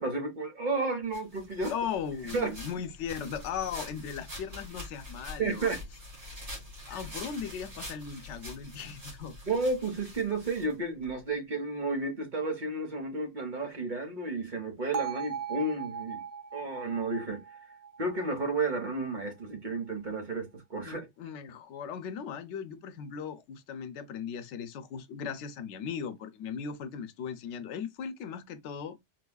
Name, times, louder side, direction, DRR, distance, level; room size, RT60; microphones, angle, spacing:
voice 1, 0.0-1.7 2.3-2.6 5.4-5.8 9.4-16.2 16.5-17.4 18.0-21.1, right 3 dB, 45° right, 1.2 m, -32 dB
sound 1, 1.1-11.1, left 1 dB, 65° right, 2.5 m, -45 dB
voice 2, 1.7-5.7 6.9-9.4 20.8-29.0, left 7 dB, 90° left, 0.9 m, -38 dB
Bell, 14.9-19.0, right 7 dB, 80° right, 1.0 m, -39 dB
4.4 x 2.3 x 2.2 m
omnidirectional pair, 1.2 m